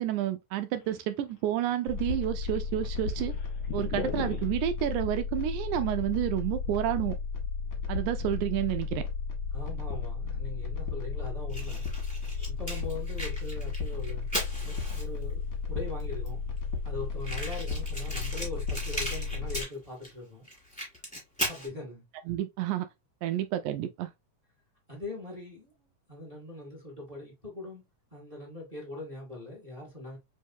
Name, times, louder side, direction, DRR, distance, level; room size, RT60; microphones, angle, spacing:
voice 1, 0.0-3.3 3.7-7.2 7.9-9.0 22.3-22.9 23.2-24.1, right 12 dB, 80° right, 1.8 m, -30 dB
sound 1, 0.7-1.7 2.0-2.1 2.4-4.5, left 5 dB, 85° left, 1.1 m, -38 dB
sound 2, 1.9-19.6, left 4 dB, 55° left, 1.2 m, -34 dB
voice 2, 9.5-11.9 12.5-14.3 14.6-16.4 16.8-20.5 21.4-22.0 24.9-25.7 26.1-27.8 28.1-30.2, left 2 dB, 20° right, 1.0 m, -41 dB
Fire, 11.5-15.3 16.0-16.1 16.3-16.4 16.6-16.7 17.2-20.1 20.4-21.7, equal, 5° left, 1.0 m, -37 dB
4.7 x 3.3 x 2.6 m
omnidirectional pair, 3.8 m